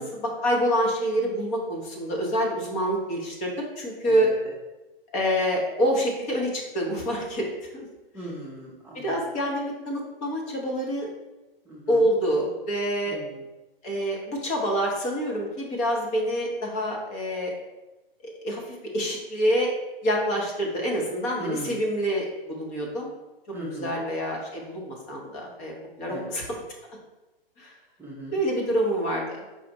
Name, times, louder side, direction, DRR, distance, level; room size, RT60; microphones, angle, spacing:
voice 1, 0.0-4.3 5.1-7.5 7.7-7.8 8.9-11.1 11.9-13.2 13.8-17.5 18.4-18.6 18.9-19.7 20.0-23.1 23.7-25.7 26.0-26.6 27.6-27.7 28.3-29.4, equal, 25° left, -1 dB, 0.9 m, -26 dB
voice 2, 4.0-4.4 8.1-9.1 11.7-12.0 13.1-13.4 21.4-21.8 23.5-24.0 26.1-26.3 28.0-28.4, right 1 dB, 5° right, -7 dB, 0.7 m, -37 dB
4.8 x 2.5 x 4.1 m, 1.1 s
figure-of-eight pair, 120°, 30 cm